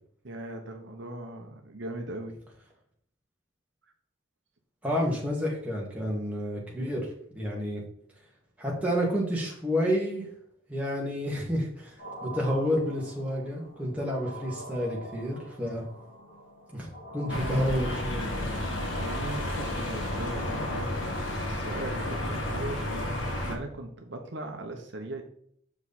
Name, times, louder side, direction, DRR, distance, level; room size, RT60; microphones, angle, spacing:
voice 1, 0.2-2.4 18.9-23.1 23.4-25.2, right 2 dB, 60° right, 4 dB, 0.9 m, -39 dB
voice 2, 4.8-7.1 7.3-7.8 8.6-10.2 10.7-15.8 16.7-16.9 17.1-18.5, equal, 5° right, -4 dB, 1.9 m, -30 dB
sound 1, 12.0-19.1, right 1 dB, 60° left, 3.1 m, -44 dB
sound 2, 17.3-23.6, left 1 dB, 80° left, 1.6 m, -32 dB
7.1 x 4.9 x 4.1 m, 0.66 s
head